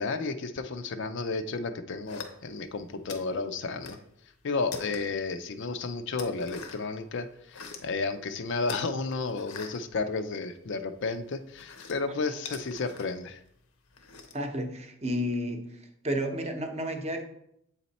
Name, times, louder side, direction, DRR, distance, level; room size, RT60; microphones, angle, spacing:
voice 1, 0.0-4.0 4.4-13.4, left 4 dB, 55° left, 9 dB, 0.5 m, -32 dB
sound 1, 2.1-2.7 3.1-4.1 4.4-5.3 5.7-6.9 7.3-7.9 8.6-10.7 11.0-14.5, left 4 dB, 80° left, 0.9 m, -43 dB
voice 2, 14.3-15.6 16.0-17.2, equal, 30° right, 4 dB, 0.8 m, -31 dB
7.9 x 4.2 x 4.1 m, 0.76 s
head